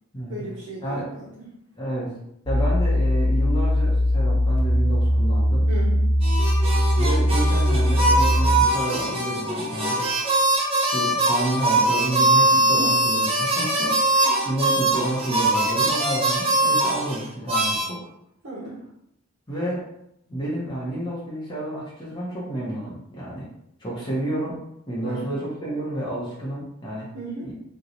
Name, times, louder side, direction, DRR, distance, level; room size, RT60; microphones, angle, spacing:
voice 1, 0.3-1.5 5.7-6.1 12.5-12.9 18.4-18.8 25.0-25.4 27.1-27.5, right 1 dB, 70° right, -6 dB, 0.7 m, -35 dB
voice 2, 1.8-2.1 2.5-5.7 7.0-10.1 10.9-18.0 19.5-19.8 20.3-23.5 23.8-24.6 24.9-27.1 27.4-27.5, right 1 dB, 20° left, -7 dB, 0.8 m, -30 dB
sound 1, 2.5-8.6, equal, 55° left, 1.2 m, -20 dB
sound 2, 6.2-17.8, right 2 dB, 30° right, 0.7 m, -22 dB
2.8 x 2.2 x 3.8 m, 0.78 s
head